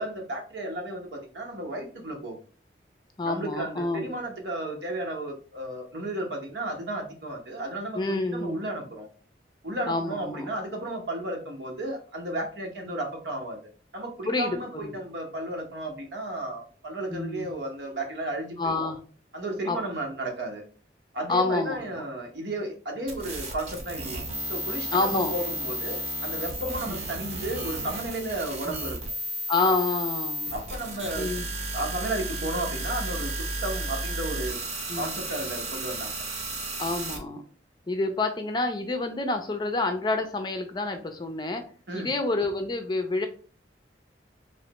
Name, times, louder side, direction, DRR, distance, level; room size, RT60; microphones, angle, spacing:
voice 1, 0.0-2.4 3.2-9.1 9.6-13.6 13.9-18.9 19.3-20.6 21.1-24.2 24.5-29.0 30.5-31.3 31.7-34.6 34.9-36.1 41.9-42.1, right 1 dB, 75° right, 2 dB, 1.0 m, -33 dB
voice 2, 3.2-4.1 7.9-8.6 9.9-10.5 14.3-14.9 17.1-17.6 18.6-19.0 19.7-19.8 21.3-21.9 24.9-25.3 26.9-27.0 28.6-28.7 29.5-30.5 31.2-31.5 34.9-35.1 36.8-37.4 37.9-41.6 41.9-43.3, left 2 dB, 25° left, 6 dB, 0.5 m, -28 dB
sound 1, 23.1-37.2, right 1 dB, 40° right, 0.8 m, -33 dB
3.2 x 3.2 x 2.9 m, 0.40 s
head